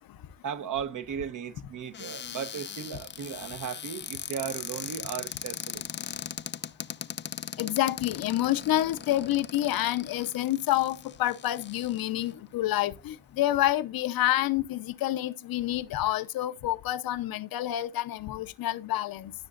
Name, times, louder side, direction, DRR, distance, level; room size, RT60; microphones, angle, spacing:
voice 1, 0.4-5.8, right 8 dB, 60° right, 1.0 m, -36 dB
Cupboard open or close, 1.9-12.3 13.0-13.1 13.3-13.7, left 8 dB, 35° left, 0.4 m, -40 dB
voice 2, 7.6-19.3, left 14 dB, 85° left, 0.8 m, -28 dB
17.0 x 6.7 x 2.5 m
cardioid pair, 130°, 34 cm